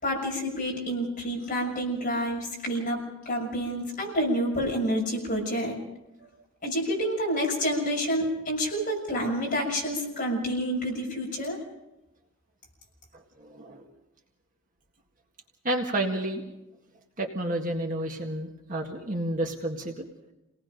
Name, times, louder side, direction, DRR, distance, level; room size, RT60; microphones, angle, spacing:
voice 1, 0.0-5.8 6.6-11.6, equal, 35° left, -2 dB, 6.6 m, -28 dB
voice 2, 13.4-13.8 15.6-16.5 17.2-20.1, right 1 dB, 35° right, 1 dB, 1.8 m, -30 dB
28.0 x 19.0 x 5.2 m, 0.95 s
head